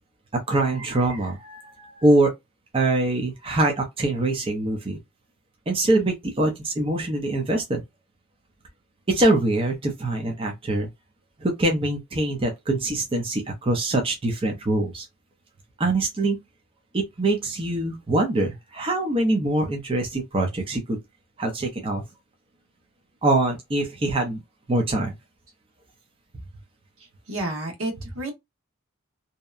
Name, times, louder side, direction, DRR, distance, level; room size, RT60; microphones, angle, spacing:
voice 1, 0.5-2.3 2.7-5.0 5.7-7.8 9.1-10.9 11.4-15.1 15.8-16.4 16.9-21.0 21.4-22.0 23.2-24.4 24.7-25.1, right 2 dB, 25° right, 0.5 m, -24 dB
voice 2, 27.3-28.3, right 1 dB, 75° right, 1.1 m, -30 dB
2.7 x 2.1 x 2.4 m
head